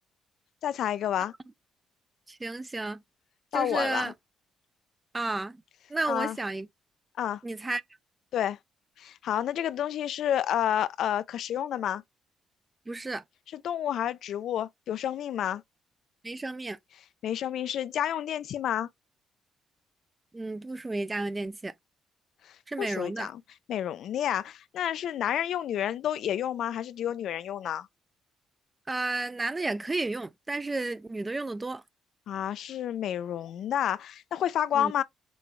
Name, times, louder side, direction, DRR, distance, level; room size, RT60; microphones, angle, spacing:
voice 1, 0.6-1.3 3.5-4.1 6.1-6.4 7.2-7.4 8.3-8.6 9.0-12.0 13.5-15.6 17.2-18.9 22.4-23.4 23.7-27.9 32.3-35.0, left 10 dB, 75° left, 0.3 m, -30 dB
voice 2, 2.3-3.0 3.5-4.1 5.1-5.6 5.9-6.7 7.4-7.8 12.9-13.2 16.2-16.8 20.3-21.7 22.7-23.3 28.9-31.8 34.7-34.9, right 2 dB, 20° right, 0.4 m, -32 dB
6.1 x 2.2 x 3.0 m
cardioid pair, 90°, 0 cm